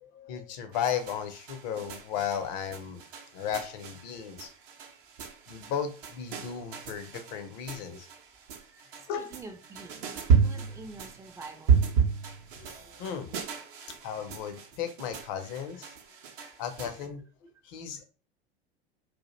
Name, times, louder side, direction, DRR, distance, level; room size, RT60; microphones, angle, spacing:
voice 1, 0.0-3.0 3.3-4.5 5.5-8.1 9.1-9.3 12.5-13.4 13.9-15.9 16.6-17.2 17.6-18.0, left 8 dB, 50° left, 8 dB, 0.6 m, -35 dB
sound 1, 0.7-17.1, right 6 dB, 60° right, 0.6 m, -32 dB
voice 2, 4.8-5.6 8.6-12.0 15.4-15.6 15.9-16.6, right 3 dB, 10° right, 5 dB, 0.4 m, -49 dB
2.3 x 2.1 x 2.9 m, 0.36 s
figure-of-eight pair, 80°, 29 cm